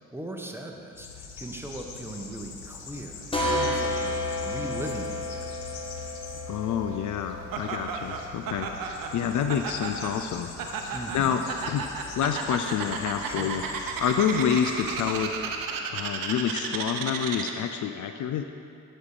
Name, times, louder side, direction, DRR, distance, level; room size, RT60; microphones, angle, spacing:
voice 1, 0.1-5.6 10.9-11.4 13.3-13.6, right 1 dB, 5° right, 1 dB, 1.1 m, -39 dB
sound 1, 1.0-15.6, left 5 dB, 85° left, 0.9 m, -44 dB
sound 2, 3.3-8.8, left 1 dB, 15° left, 1.7 m, -32 dB
voice 2, 6.5-10.5 10.8-11.8 12.2-13.6 14.0-15.5 15.9-18.5, left 8 dB, 55° left, 7 dB, 0.5 m, -28 dB
Laughter, 7.5-17.8, right 5 dB, 65° right, 0.8 m, -34 dB
11.0 x 4.4 x 4.9 m, 2.6 s
hypercardioid pair, 45°, 36 cm